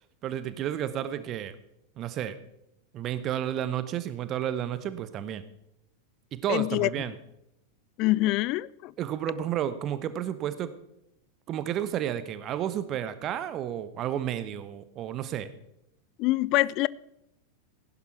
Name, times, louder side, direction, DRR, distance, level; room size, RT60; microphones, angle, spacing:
voice 1, 0.2-1.5 2.0-2.4 2.9-5.4 6.3-7.2 9.0-10.7 11.5-15.5, right 10 dB, 35° right, 1.0 m, -31 dB
voice 2, 6.5-6.9 8.0-8.9 16.2-16.9, left 18 dB, 40° left, 0.4 m, -25 dB
16.0 x 11.0 x 4.8 m
figure-of-eight pair, 90°, 0 cm